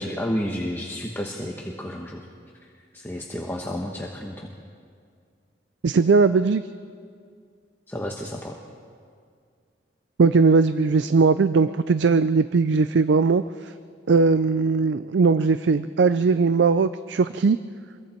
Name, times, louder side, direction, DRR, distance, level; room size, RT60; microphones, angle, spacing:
voice 1, 0.0-2.2 2.6-4.5 7.9-8.6, equal, 10° left, 0 dB, 1.2 m, -31 dB
voice 2, 5.8-6.6 10.2-13.7 14.1-17.6, right 4 dB, 70° right, 13 dB, 0.4 m, -19 dB
26.5 x 22.0 x 4.5 m, 2.2 s
head